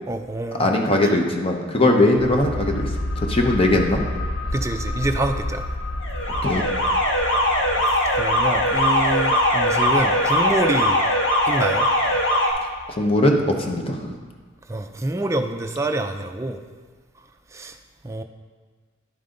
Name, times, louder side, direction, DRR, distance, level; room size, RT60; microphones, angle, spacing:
voice 1, 0.1-0.7 1.8-2.3 4.5-5.6 7.8-11.0 11.5-11.9 14.7-16.6 17.5-17.8 18.0-18.2, right 2 dB, 15° right, 6 dB, 0.4 m, -26 dB
voice 2, 0.6-2.9 3.2-4.0 6.4-6.6 13.0-13.4 13.7-14.1, left 1 dB, 30° left, 2 dB, 0.8 m, -20 dB
sound 1, 2.2-13.5 13.8-13.9, left 1 dB, 90° left, 0.9 m, -32 dB
Alarm, 6.0-12.5, equal, 60° left, 1.5 m, -20 dB
11.0 x 5.5 x 3.8 m, 1.5 s
head